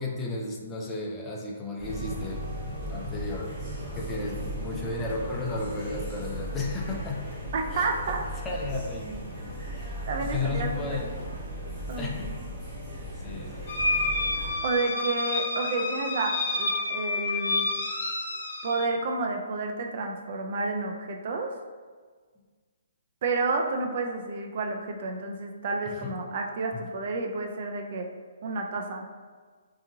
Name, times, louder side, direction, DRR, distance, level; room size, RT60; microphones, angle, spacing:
voice 1, 0.0-3.5 4.0-7.3 7.7-7.9 8.4-11.2 12.0-12.4 13.2-13.9 25.9-26.1, left 2 dB, 15° left, -2 dB, 0.4 m, -34 dB
sound 1, 1.8-14.5, equal, 15° right, 1.1 m, -36 dB
voice 2, 7.5-8.2 10.1-11.1 11.9-12.1 12.4-12.5 14.6-17.7 18.6-21.5 23.2-28.1 28.4-29.1, right 3 dB, 50° right, 2 dB, 0.3 m, -30 dB
sound 2, 13.7-18.9, left 2 dB, 60° left, 0.5 m, -29 dB
2.7 x 2.6 x 2.6 m, 1.5 s
hypercardioid pair, 155°, 0 cm